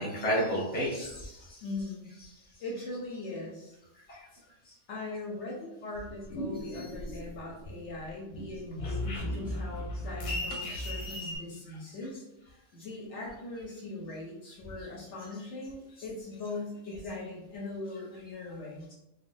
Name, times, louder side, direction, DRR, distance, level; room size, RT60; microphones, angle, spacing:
voice 1, 0.0-1.6 4.1-4.3 6.7-6.9 10.7-10.9, equal, 10° left, -5 dB, 0.8 m, -32 dB
voice 2, 1.6-2.1 2.6-3.8 4.9-18.9, left 2 dB, 70° left, -1 dB, 0.9 m, -40 dB
sound 1, 5.9-7.6 8.0-11.4, left 1 dB, 90° left, 1.1 m, -36 dB
3.4 x 2.2 x 2.5 m, 0.90 s
omnidirectional pair, 1.3 m